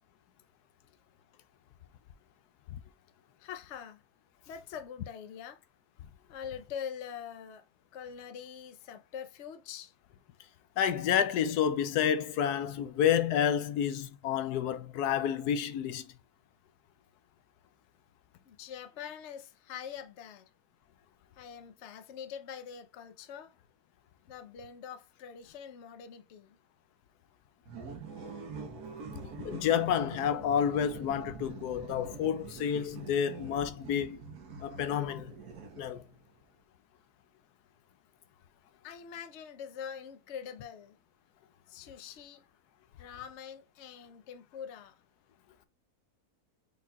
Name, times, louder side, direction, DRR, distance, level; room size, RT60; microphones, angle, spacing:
voice 1, 3.4-4.0 4.5-5.6 6.3-7.7 7.9-9.9 18.4-20.5 21.4-23.5 24.3-26.6 38.8-41.0 41.7-42.4 43.0-45.0, left 8 dB, 55° left, 0.9 m, -44 dB
voice 2, 10.8-16.1 29.4-34.2 34.6-35.3 35.8-36.0, left 9 dB, 80° left, 1.2 m, -29 dB
sound 1, 27.6-36.2, right 5 dB, 75° right, 1.7 m, -45 dB
5.4 x 4.1 x 2.3 m
omnidirectional pair, 1.7 m